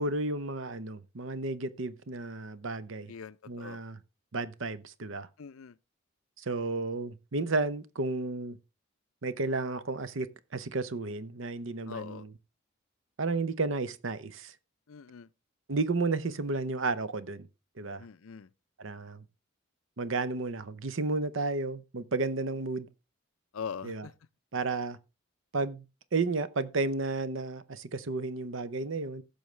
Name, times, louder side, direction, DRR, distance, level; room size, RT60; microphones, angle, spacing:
voice 1, 0.0-3.1 3.5-4.0 4.3-5.3 6.4-8.6 9.2-12.2 13.2-14.5 15.7-17.5 17.8-18.0 18.8-19.2 20.0-22.9 23.8-24.0 24.5-25.0 25.5-25.9 26.1-29.2, right 3 dB, 70° right, 0.7 m, -32 dB
voice 2, 3.1-3.8 5.4-5.8 11.9-12.3 14.9-15.3 18.0-18.5 23.5-24.1, left 6 dB, 80° left, 0.5 m, -42 dB
15.5 x 6.4 x 3.2 m
head